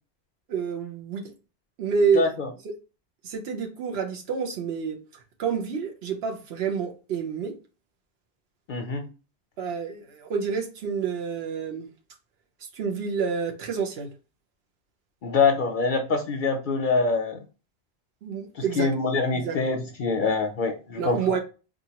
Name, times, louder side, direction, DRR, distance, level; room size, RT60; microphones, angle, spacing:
voice 1, 0.5-1.3 1.8-2.3 3.2-7.5 9.6-11.9 12.7-14.1 18.2-18.9 19.3-19.6 21.0-21.4, right 6 dB, 65° right, 1.0 m, -28 dB
voice 2, 2.1-2.5 8.7-9.1 15.2-17.4 18.6-21.4, left 4 dB, 55° left, 0.6 m, -25 dB
4.4 x 2.5 x 2.9 m
omnidirectional pair, 1.1 m